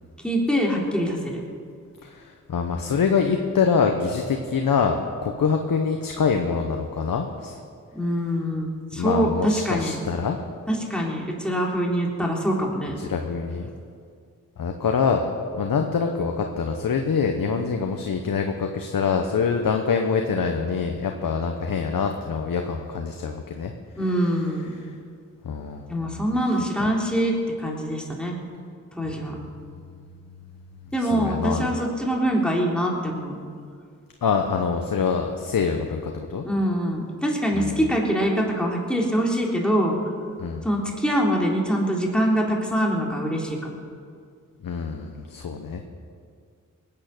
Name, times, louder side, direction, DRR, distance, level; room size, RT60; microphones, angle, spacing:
voice 1, 0.2-1.4 8.0-10.0 10.7-13.0 24.0-24.7 25.9-28.4 29.0-29.4 30.9-33.4 36.4-39.9 40.6-43.7, equal, 5° left, -2 dB, 3.6 m, -24 dB
voice 2, 2.0-7.6 9.0-10.4 13.0-13.7 14.6-23.7 24.8-24.9 25.4-26.1 31.0-31.7 34.2-36.4 37.5-37.7 40.4-40.6 44.6-45.8, left 5 dB, 80° left, 4 dB, 1.0 m, -25 dB
19.5 x 9.1 x 6.7 m, 2.2 s
cardioid pair, 50°, 33 cm